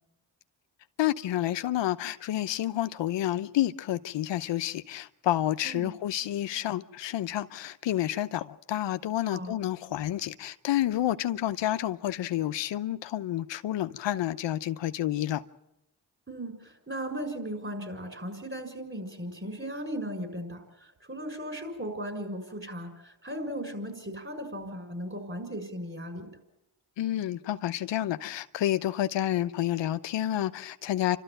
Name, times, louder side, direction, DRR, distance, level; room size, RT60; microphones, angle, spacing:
voice 1, 1.0-15.4 27.0-31.2, left 13 dB, 85° left, 0.8 m, -29 dB
voice 2, 16.3-26.3, equal, 30° right, 6.5 m, -37 dB
29.0 x 13.0 x 9.0 m
cardioid pair, 65°, 42 cm